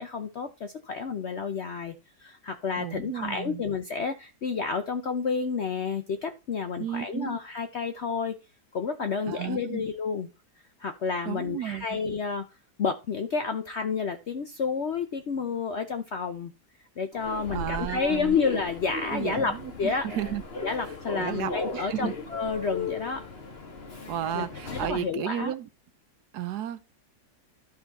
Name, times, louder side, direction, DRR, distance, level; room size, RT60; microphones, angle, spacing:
voice 1, 0.0-1.9 2.2-8.4 8.7-10.3 10.8-12.5 12.8-16.5 17.0-20.1 20.6-23.3 24.3-24.5 24.7-25.5, left 5 dB, 60° left, 0.7 m, -30 dB
voice 2, 2.8-3.6 6.8-7.4 9.3-9.8 11.2-12.0 17.5-18.4 19.1-20.4 21.2-22.2 24.1-25.7 26.3-26.8, right 11 dB, 70° right, 1.2 m, -33 dB
Human voice / Subway metro underground, 17.1-25.1, left 3 dB, 35° left, 1.6 m, -37 dB
12.5 x 4.8 x 4.1 m
omnidirectional pair, 1.9 m